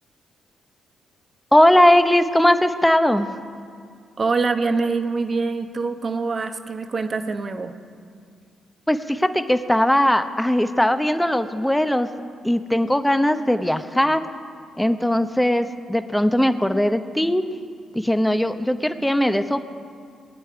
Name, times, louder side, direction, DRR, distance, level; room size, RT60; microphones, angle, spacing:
voice 1, 1.5-3.3 8.9-12.1 12.4-14.2 14.8-17.4 17.9-19.6, left 1 dB, 5° left, 9 dB, 1.0 m, -19 dB
voice 2, 4.2-7.7, right 4 dB, 45° right, 7 dB, 1.1 m, -24 dB
19.5 x 9.7 x 4.9 m, 2.2 s
hypercardioid pair, 50°, 0 cm